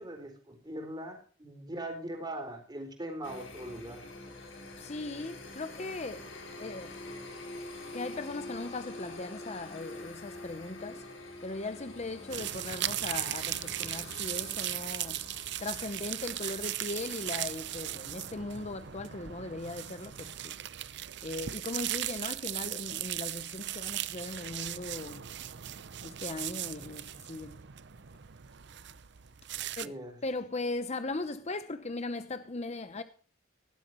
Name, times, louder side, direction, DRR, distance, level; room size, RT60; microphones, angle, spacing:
voice 1, 0.0-4.0 29.5-30.1, right 1 dB, 20° right, 4.2 m, -41 dB
sound 1, 3.2-18.0, left 2 dB, 75° left, 4.5 m, -46 dB
voice 2, 4.8-7.0 7.9-20.6 21.2-25.3 26.0-27.6 29.8-33.0, left 2 dB, 35° left, 0.8 m, -39 dB
sound 2, 12.3-29.9, right 13 dB, 60° right, 0.7 m, -38 dB
18.0 x 12.0 x 3.1 m
head